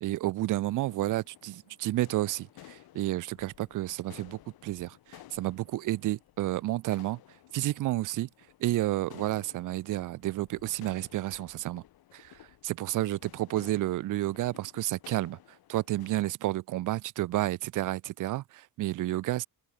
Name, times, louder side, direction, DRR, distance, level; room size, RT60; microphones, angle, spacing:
voice 1, 0.0-7.2 7.5-8.3 8.6-11.8 12.1-12.3 12.6-15.4 15.7-19.5, right 16 dB, 60° right, 0.5 m, -31 dB
sound 1, 0.8-16.3, left 13 dB, 85° left, 4.8 m, -55 dB
cardioid pair, 155°, 36 cm